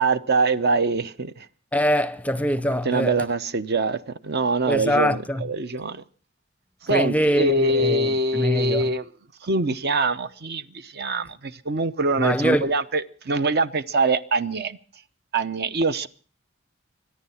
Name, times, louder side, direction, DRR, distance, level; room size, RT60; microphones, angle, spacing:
voice 1, 0.0-1.5 2.8-6.0 6.8-9.0 9.4-14.8 15.3-16.1, right 3 dB, 55° right, 0.8 m, -24 dB
voice 2, 1.7-3.2 4.7-5.4 6.9-8.9 12.2-12.7, equal, 5° left, 0.7 m, -23 dB
24.5 x 10.0 x 5.7 m
head